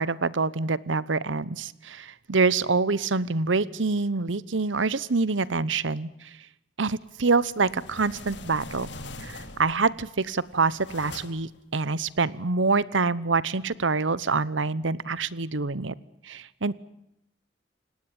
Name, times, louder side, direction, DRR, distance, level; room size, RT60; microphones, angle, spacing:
voice 1, 0.0-6.3 6.8-8.9 9.2-15.9 16.2-16.7, right 4 dB, 80° right, 20 dB, 1.0 m, -26 dB
sound 1, 7.4-9.8 10.3-11.6, left 2 dB, 65° left, 2.9 m, -42 dB
29.5 x 18.0 x 8.8 m, 0.82 s
head